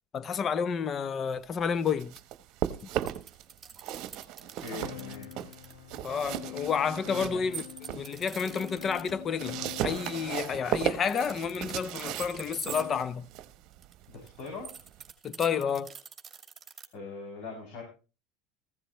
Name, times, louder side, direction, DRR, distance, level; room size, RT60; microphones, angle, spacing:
voice 1, 0.1-2.1 6.0-7.6 7.9-13.3 15.2-15.9, left 6 dB, 35° left, 0.8 m, -30 dB
sound 1, 1.6-3.4 3.7-8.1 8.5-15.1, right 12 dB, 55° right, 1.1 m, -36 dB
sound 2, 2.8-5.7 7.5-9.1 10.9-12.9 13.7-16.9, right 6 dB, 20° right, 2.7 m, -44 dB
voice 2, 4.6-5.3 7.3-7.4 14.1-14.7 16.9-17.8, left 4 dB, 60° left, 7.1 m, -41 dB
sound 3, 4.8-13.2, left 10 dB, 90° left, 1.7 m, -46 dB
15.5 x 15.0 x 3.1 m
hypercardioid pair, 95°, 0 cm